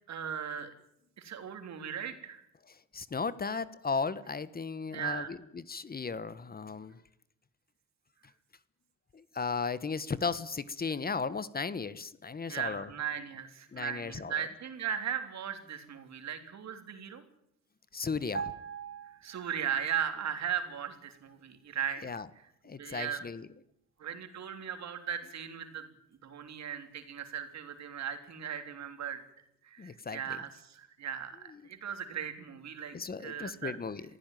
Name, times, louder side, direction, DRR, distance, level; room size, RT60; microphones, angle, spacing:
voice 1, 0.1-0.7 1.2-2.4 4.9-5.3 12.5-17.3 19.0-22.1 22.8-23.3 24.0-25.9 26.2-29.2 29.6-33.0 33.2-33.8, right 8 dB, 65° right, 7 dB, 3.5 m, -37 dB
voice 2, 2.9-7.0 9.1-12.9 13.7-14.3 17.9-18.5 22.0-22.3 22.6-23.5 29.8-30.2 32.9-34.0, left 5 dB, 30° left, 16 dB, 1.2 m, -35 dB
sound 1, 18.3-20.0 20.2-20.5, right 6 dB, 40° right, 2.0 m, -41 dB
23.0 x 15.5 x 9.2 m, 0.77 s
cardioid pair, 90°, 30 cm